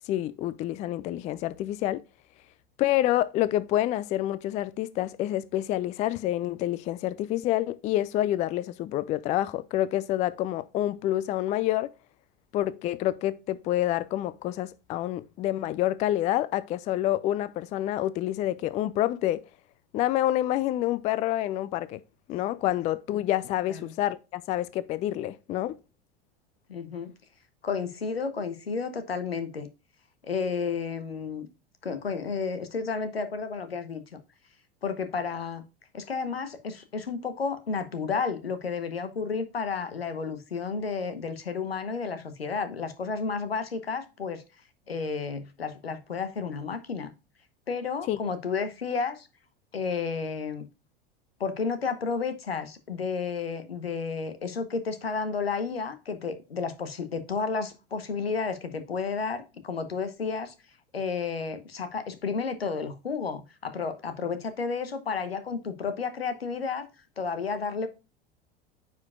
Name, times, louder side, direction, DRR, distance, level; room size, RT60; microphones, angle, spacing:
voice 1, 0.1-2.0 2.8-11.9 12.5-19.4 19.9-22.0 22.3-25.8 48.1-48.2, left 14 dB, 25° left, 0.3 m, -28 dB
voice 2, 26.7-27.1 27.6-29.7 30.2-31.5 31.8-34.2 34.8-35.6 35.9-44.4 44.9-47.1 47.7-49.3 49.7-50.7 51.4-60.5 60.9-66.9 67.2-67.9, left 5 dB, 80° left, 1.0 m, -32 dB
9.3 x 5.0 x 2.4 m
figure-of-eight pair, 80°, 30 cm